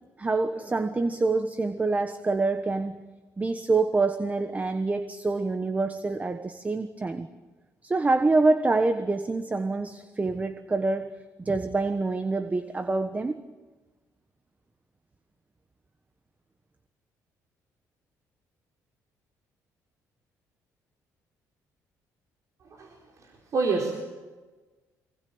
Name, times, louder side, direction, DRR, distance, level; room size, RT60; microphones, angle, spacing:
voice 1, 0.2-3.1 3.4-7.3 7.8-13.4, right 3 dB, 25° right, 10 dB, 1.3 m, -26 dB
voice 2, 22.7-24.0, right 4 dB, 55° right, 1 dB, 4.5 m, -29 dB
23.5 x 19.5 x 8.9 m, 1.3 s
cardioid pair, 90°, 7 cm